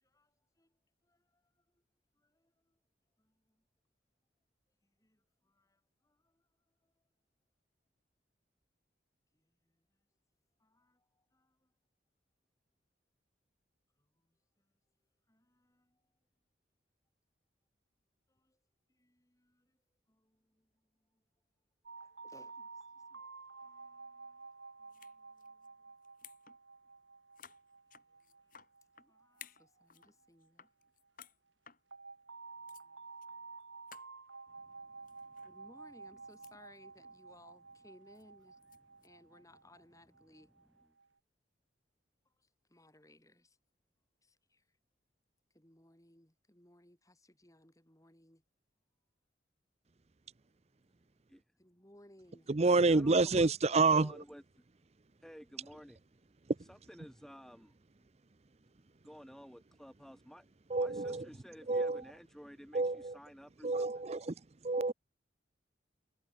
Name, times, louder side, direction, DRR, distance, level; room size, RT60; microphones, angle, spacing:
voice 1, 0.0-0.7 1.0-1.4 2.2-2.7 3.2-3.6 5.0-6.4 9.3-9.8 10.6-11.7 14.0-14.1 15.3-16.0 18.3-18.6 18.9-19.8 20.1-20.7 21.1-21.2 22.2-23.3 23.6-24.5 24.8-25.7 29.0-30.7 32.8-33.0 33.3-33.4 35.4-38.6 39.0-40.5 42.7-43.6 44.2-44.6 45.5-48.4 51.6-52.5, left 1 dB, 20° left, 6.6 m, -64 dB
sound 1, 21.9-30.7 31.9-41.1, right 4 dB, 90° right, 3.3 m, -52 dB
sound 2, 24.9-25.1 25.4-25.7 26.0-26.6 26.8-26.9 27.3-29.1 29.3-30.1 30.4-31.4 31.7-31.8 32.4-32.5 32.7-32.8 33.2-33.3 33.6-33.7 33.9-34.1 35.1-35.5 35.9-36.6 37.0-37.2 38.1-39.1, left 9 dB, 50° left, 4.2 m, -57 dB
voice 2, 34.6-35.6 38.9-39.0 39.3-39.4 51.3-51.4 52.8-54.6 55.2-56.0 56.7-57.8 59.0-60.5 60.7-64.0, equal, ahead, 7.1 m, -54 dB
voice 3, 52.5-54.2 60.7-61.2 61.7-62.0 62.7-63.2 63.6-64.3 64.6-64.9, right 3 dB, 35° right, 0.6 m, -28 dB
head